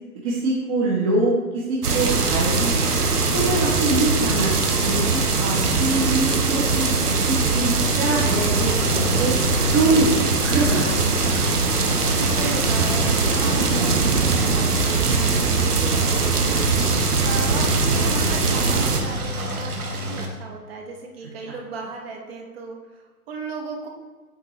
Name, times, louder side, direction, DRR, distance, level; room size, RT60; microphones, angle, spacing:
voice 1, 0.2-2.7 3.3-9.3 9.7-10.1 10.4-10.9, right 2 dB, 25° right, -5 dB, 0.8 m, -24 dB
sound 1, 1.8-19.0, right 4 dB, 90° right, 0.9 m, -21 dB
Engine, 5.1-20.3, left 1 dB, 70° right, 1.2 m, -31 dB
voice 2, 12.1-16.6 17.2-19.7 20.0-23.9, right 3 dB, 40° right, 0 dB, 1.2 m, -34 dB
8.4 x 3.7 x 3.0 m, 1.4 s
figure-of-eight pair, 130°, 45 cm